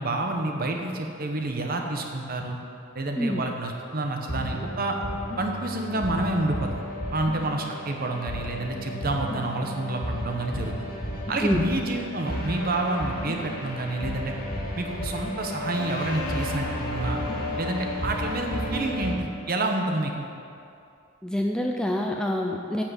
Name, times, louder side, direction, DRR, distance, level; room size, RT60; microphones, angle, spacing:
voice 1, 0.0-2.6 2.9-5.0 5.4-6.8 7.1-10.9 11.3-14.3 14.8-17.2 17.6-20.3, right 2 dB, 45° right, 2 dB, 1.0 m, -29 dB
sound 1, 4.3-19.1, equal, 45° left, 1.8 m, -33 dB
voice 2, 21.2-22.8, left 1 dB, 5° left, 1 dB, 0.4 m, -26 dB
8.7 x 6.1 x 8.0 m, 2.6 s
head